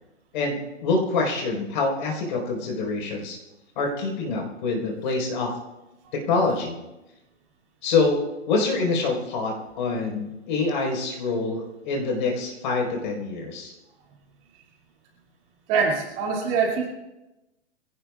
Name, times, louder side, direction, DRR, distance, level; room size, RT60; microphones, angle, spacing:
voice 1, 0.3-3.4 3.8-5.5 6.3-6.8 7.8-13.7, left 3 dB, 40° left, 0 dB, 4.5 m, -26 dB
voice 2, 15.7-16.8, right 5 dB, 25° right, -1 dB, 2.4 m, -23 dB
24.5 x 17.0 x 2.4 m, 1.0 s
hypercardioid pair, 160°, 37 cm